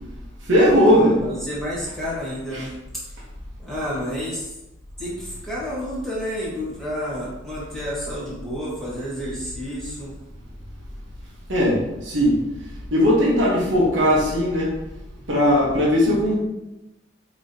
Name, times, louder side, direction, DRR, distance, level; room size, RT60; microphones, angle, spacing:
voice 1, 0.5-1.2 2.5-2.7 11.5-12.4 12.9-14.7 15.3-16.4, equal, 75° right, -4 dB, 1.0 m, -18 dB
voice 2, 1.2-2.7 3.6-4.5 5.0-10.1, equal, ahead, -8 dB, 1.4 m, -30 dB
4.8 x 3.0 x 2.7 m, 0.95 s
head